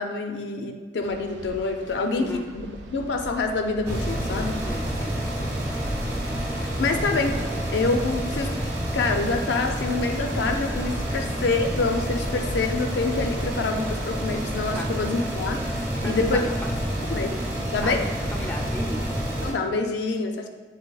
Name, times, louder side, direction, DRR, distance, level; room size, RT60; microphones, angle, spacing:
voice 1, 0.0-4.6 6.4-7.4 7.7-8.5 8.9-16.5 17.1-17.4 17.7-18.1 19.4-20.5, left 3 dB, 80° left, 5 dB, 0.4 m, -26 dB
sound 1, 1.0-8.4, right 2 dB, 85° right, 0.4 m, -42 dB
sound 2, 3.9-19.5, equal, 15° right, 0.9 m, -28 dB
voice 2, 4.6-5.2 7.5-7.6 11.1-11.3 14.7-14.9 15.9-16.5 17.8-17.9 18.3-19.1, equal, 10° left, 1 dB, 0.4 m, -34 dB
7.4 x 3.0 x 2.3 m, 1.4 s
head